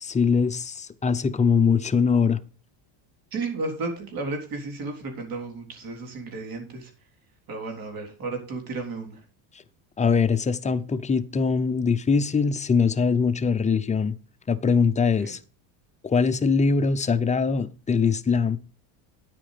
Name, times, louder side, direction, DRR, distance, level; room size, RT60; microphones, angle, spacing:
voice 1, 0.0-2.4 10.0-14.1 14.5-15.4 16.0-18.6, left 5 dB, 15° left, 0.6 m, -22 dB
voice 2, 3.3-6.9 7.5-9.2 15.2-15.3, right 3 dB, 45° right, 3.8 m, -33 dB
9.5 x 9.2 x 5.1 m
cardioid pair, 125°, 47 cm